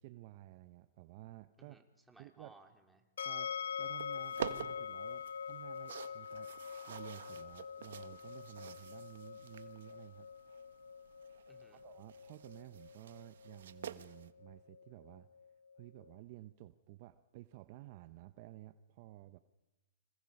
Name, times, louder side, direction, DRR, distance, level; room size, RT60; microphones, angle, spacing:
voice 1, 0.0-1.8 2.2-2.6 3.2-6.5 6.9-10.3 11.7-15.3 15.8-19.4, right 16 dB, 40° right, 12 dB, 0.9 m, -53 dB
voice 2, 1.6-3.0 11.5-11.8, right 3 dB, 5° right, 2 dB, 3.3 m, -61 dB
sound 1, 3.2-16.2, left 7 dB, 70° left, 1.4 m, -45 dB
sound 2, 3.6-14.3, right 9 dB, 65° right, 1.5 m, -49 dB
29.5 x 26.5 x 5.4 m, 1.1 s
hypercardioid pair, 140°, 0 cm